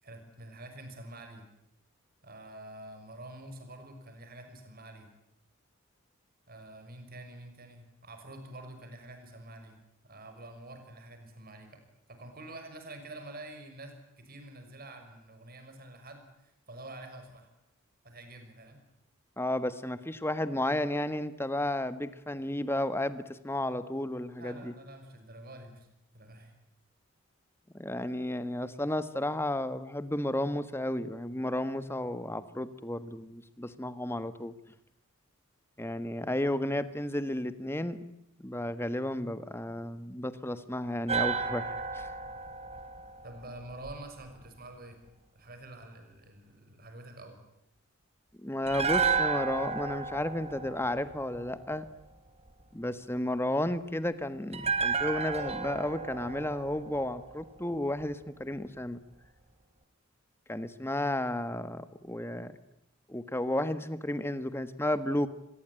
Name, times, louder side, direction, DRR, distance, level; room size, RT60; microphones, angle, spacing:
voice 1, 0.0-1.4 2.2-5.1 6.5-9.8 10.0-11.8 12.1-17.5 18.0-18.8 24.4-25.9 26.1-26.5 43.2-45.0 45.3-47.5, right 1 dB, 45° right, 6 dB, 6.2 m, -47 dB
voice 2, 19.4-24.7 27.7-34.5 35.8-38.0 38.4-42.1 48.4-51.8 52.7-59.0 60.5-62.5 63.1-65.3, left 1 dB, 10° left, 13 dB, 1.4 m, -33 dB
sound 1, 41.1-44.3 48.7-51.9 54.5-57.7 58.0-58.1, right 5 dB, 30° right, 2.8 m, -33 dB
26.5 x 22.0 x 9.0 m, 0.78 s
head